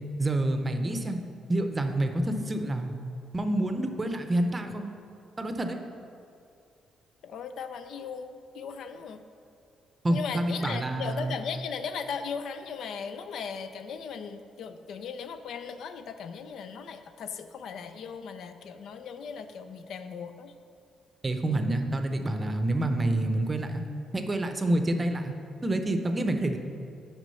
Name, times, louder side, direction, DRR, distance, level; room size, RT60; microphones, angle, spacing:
voice 1, 0.2-1.2 1.5-2.9 3.3-4.9 5.4-5.8 10.0-11.4 21.2-23.8 24.1-25.3 25.6-26.6, right 1 dB, 25° right, 6 dB, 0.6 m, -28 dB
voice 2, 7.2-9.2 10.1-20.5, left 6 dB, 70° left, 9 dB, 0.4 m, -37 dB
6.1 x 5.0 x 5.5 m, 2.5 s
cardioid pair, 90°, 0 cm